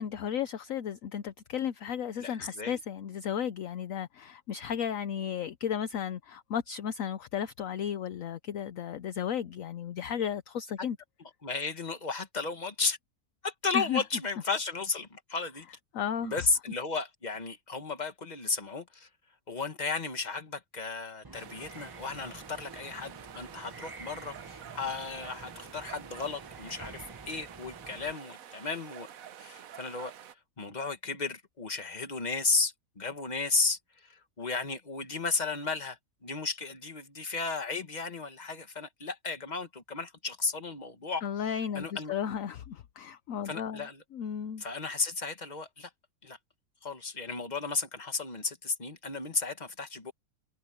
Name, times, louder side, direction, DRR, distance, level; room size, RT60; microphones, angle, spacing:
voice 1, 0.0-11.0 13.7-14.0 15.9-16.4 41.2-43.9 44.1-44.6, left 8 dB, 60° left, 1.1 m, -34 dB
voice 2, 2.2-2.8 11.4-13.0 13.4-15.7 16.2-19.1 19.5-29.1 29.4-30.1 30.6-41.2 41.8-42.1 43.5-44.0 44.6-45.9 46.2-46.4 46.8-50.1, left 4 dB, 25° left, 1.7 m, -34 dB
sound 1, 21.2-28.1, right 3 dB, 15° right, 0.9 m, -49 dB
sound 2, 21.3-30.3, right 10 dB, 65° right, 1.2 m, -49 dB
omnidirectional pair, 1.7 m